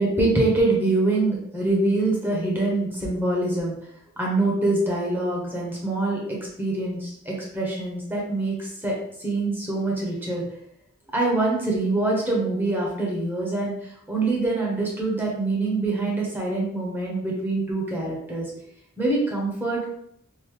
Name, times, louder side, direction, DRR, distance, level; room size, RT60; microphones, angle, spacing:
voice 1, 0.0-3.8 4.2-10.4 11.1-18.5 19.0-19.9, right 2 dB, 10° right, -3 dB, 0.9 m, -25 dB
3.7 x 2.6 x 3.1 m, 0.71 s
head